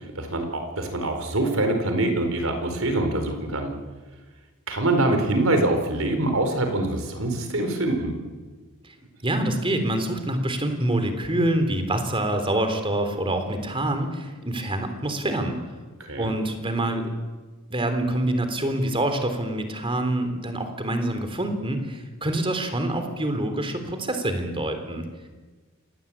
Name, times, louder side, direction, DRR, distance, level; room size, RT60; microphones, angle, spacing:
voice 1, 0.1-3.7 4.7-8.1 16.0-16.3, right 2 dB, 70° right, 6 dB, 4.7 m, -24 dB
voice 2, 9.2-15.6 16.2-17.1 17.7-25.1, right 1 dB, 25° right, 7 dB, 3.5 m, -26 dB
27.5 x 19.5 x 8.8 m, 1.3 s
head